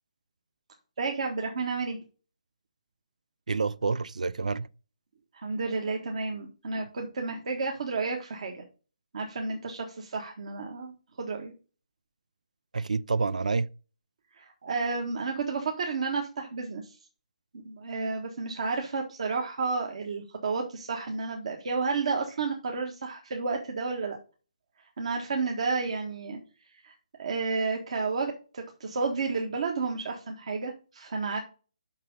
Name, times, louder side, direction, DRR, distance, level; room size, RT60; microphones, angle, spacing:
voice 1, 1.0-2.0 5.4-8.6 9.1-11.5 14.4-17.0 17.6-24.2 25.0-26.4 26.8-26.9 27.2-31.4, right 4 dB, 55° right, 1.5 m, -31 dB
voice 2, 3.5-4.7 12.7-13.7, right 4 dB, 80° right, 0.4 m, -28 dB
6.5 x 5.9 x 5.4 m
hypercardioid pair, 155°, 4 cm